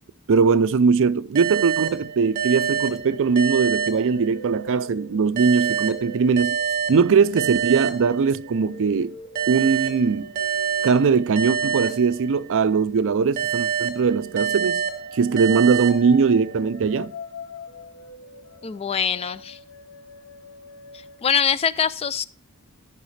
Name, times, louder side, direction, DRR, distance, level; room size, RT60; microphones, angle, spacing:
voice 1, 0.3-6.6 6.9-9.1 9.5-10.3 10.8-14.8 15.1-17.1, right 5 dB, 60° right, 0.4 m, -20 dB
sound 1, 1.3-4.7 5.4-8.7 9.3-12.7 13.4-16.7, right 7 dB, 40° right, 1.3 m, -27 dB
sound 2, 2.4-13.5 14.1-21.2, left 2 dB, 90° left, 0.9 m, -44 dB
voice 2, 18.6-19.6 21.2-22.2, left 7 dB, 25° left, 0.3 m, -23 dB
14.0 x 5.7 x 3.2 m
head